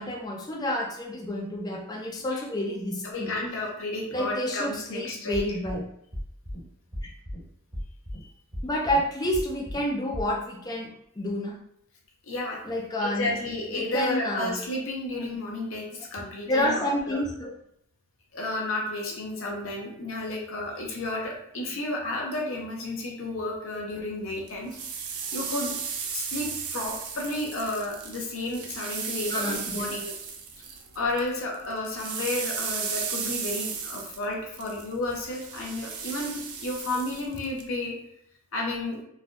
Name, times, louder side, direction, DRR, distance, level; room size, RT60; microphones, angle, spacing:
voice 1, 0.0-3.3 4.1-5.8 7.0-7.1 8.6-11.6 12.7-13.3 13.7-14.6 16.2-17.5 29.3-30.0, left 1 dB, 15° left, -1 dB, 0.4 m, -29 dB
voice 2, 3.0-5.4 8.2-8.3 12.2-12.6 13.0-17.2 18.3-24.8 25.3-25.8 26.1-30.1 30.9-38.0 38.5-39.0, left 2 dB, 60° left, -1 dB, 0.7 m, -32 dB
sound 1, 5.3-5.8 6.1-6.6 6.9-7.4 7.7-8.2 8.5-9.0 9.3-9.8 10.1-10.2, equal, 10° right, 1.2 m, -34 dB
sound 2, 24.5-31.3 31.5-37.6, right 6 dB, 80° right, 0.5 m, -35 dB
3.2 x 2.3 x 2.5 m, 0.74 s
head